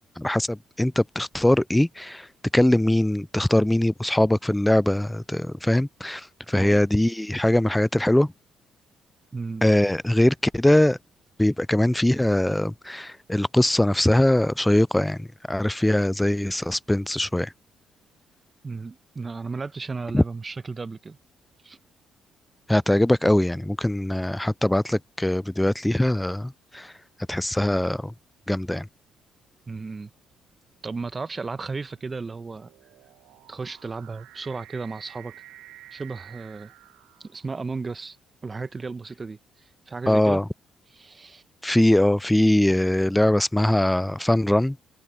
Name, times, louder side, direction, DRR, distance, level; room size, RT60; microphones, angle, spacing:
voice 1, 0.2-2.3 2.5-8.3 9.6-11.0 11.4-17.5 20.1-20.2 22.7-26.9 27.3-28.1 28.5-28.9 40.1-40.4 41.6-44.8, left 1 dB, 10° left, 0.3 m, -21 dB
voice 2, 9.3-9.6 18.6-21.2 21.6-21.8 29.7-30.1 30.8-32.7 33.5-35.4 35.9-36.7 37.2-38.2 38.4-39.4 39.9-40.4 40.9-41.4, right 4 dB, 35° right, 1.0 m, -34 dB
sound 1, 28.4-28.8 29.6-37.8, right 15 dB, 80° right, 1.3 m, -51 dB
hypercardioid pair, 55°, 0 cm